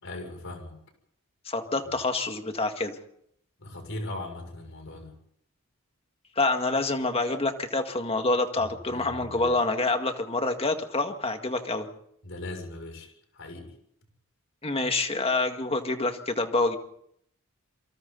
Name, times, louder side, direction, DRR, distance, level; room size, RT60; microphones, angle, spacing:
voice 1, 0.0-0.8 3.6-5.2 8.6-9.5 12.2-13.7, left 2 dB, 65° left, 4 dB, 6.6 m, -39 dB
voice 2, 1.5-3.0 6.4-11.9 14.6-16.8, left 2 dB, 30° left, 6 dB, 1.9 m, -27 dB
28.0 x 24.0 x 4.1 m, 0.70 s
head